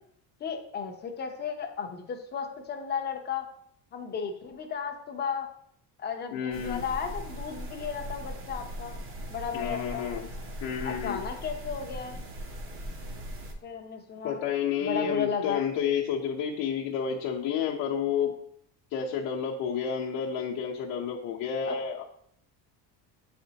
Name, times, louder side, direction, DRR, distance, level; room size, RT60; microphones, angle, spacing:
voice 1, 0.4-3.4 3.9-5.5 6.0-9.0 9.3-10.1 10.8-12.2 13.6-14.4 14.8-15.6 21.7-21.8, left 6 dB, 25° left, 3 dB, 0.7 m, -34 dB
voice 2, 6.3-6.8 9.5-10.3 10.6-11.2 14.2-18.3 18.9-22.0, left 7 dB, 60° left, -4 dB, 0.9 m, -30 dB
sound 1, 6.5-13.5, equal, 30° right, 0.7 m, -39 dB
8.5 x 4.3 x 2.8 m, 0.69 s
cardioid pair, 165°, 42 cm